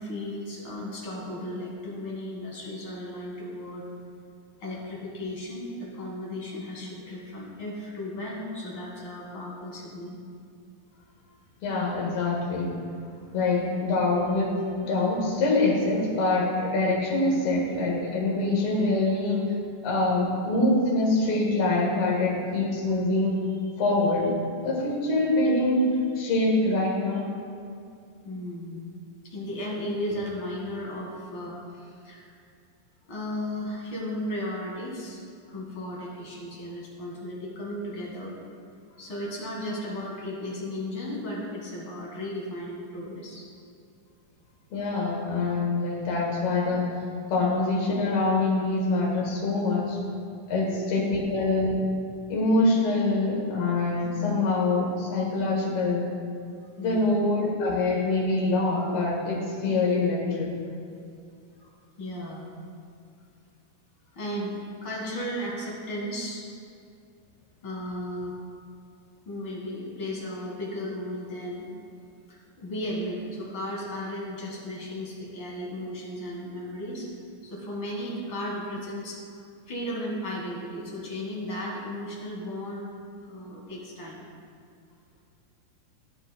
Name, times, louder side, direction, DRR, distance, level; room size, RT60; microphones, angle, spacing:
voice 1, 0.0-3.9 4.6-10.2 20.1-20.2 28.2-28.9 29.2-32.3 33.1-35.2 35.5-38.3 39.0-43.5 50.6-51.2 56.8-57.2 62.0-62.5 64.2-66.4 67.6-68.4 69.3-71.7 72.3-77.1 77.4-79.2 79.7-82.9 83.2-84.2, left 1 dB, 40° left, -4 dB, 2.0 m, -35 dB
voice 2, 11.6-12.8 13.3-19.5 19.8-23.4 23.8-24.3 24.6-27.3 44.7-46.9 47.3-50.0 50.5-51.8 52.3-56.1 56.8-60.5, left 2 dB, 80° left, -2 dB, 3.4 m, -25 dB
12.5 x 10.5 x 2.3 m, 2.4 s
omnidirectional pair, 4.4 m